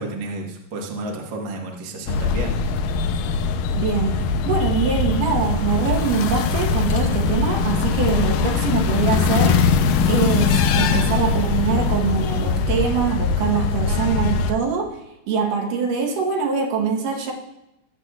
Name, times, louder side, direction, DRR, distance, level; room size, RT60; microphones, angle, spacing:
voice 1, 0.0-2.6, right 2 dB, 50° right, -1 dB, 1.5 m, -31 dB
sound 1, 2.1-14.5, left 5 dB, 85° left, 2.3 m, -21 dB
voice 2, 3.8-9.6 10.1-15.0 15.3-17.3, right 6 dB, 75° right, 1 dB, 2.7 m, -23 dB
19.5 x 7.8 x 2.4 m, 0.89 s
omnidirectional pair, 3.9 m